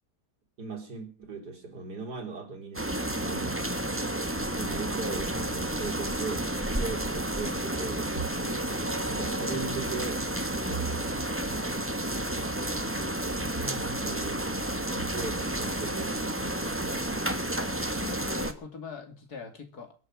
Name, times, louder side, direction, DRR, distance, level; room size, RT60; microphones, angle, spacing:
voice 1, 0.6-3.7 4.5-5.3 5.5-8.1 9.1-10.2 13.6-14.5 15.1-17.1, right 4 dB, 85° right, 4.2 m, -39 dB
sound 1, 2.7-18.5, right 1 dB, 10° right, 1.3 m, -31 dB
sound 2, 8.1-16.4, right 4 dB, 70° right, 3.3 m, -43 dB
voice 2, 17.7-19.9, left 5 dB, 70° left, 3.0 m, -42 dB
22.0 x 8.6 x 6.3 m
omnidirectional pair, 1.7 m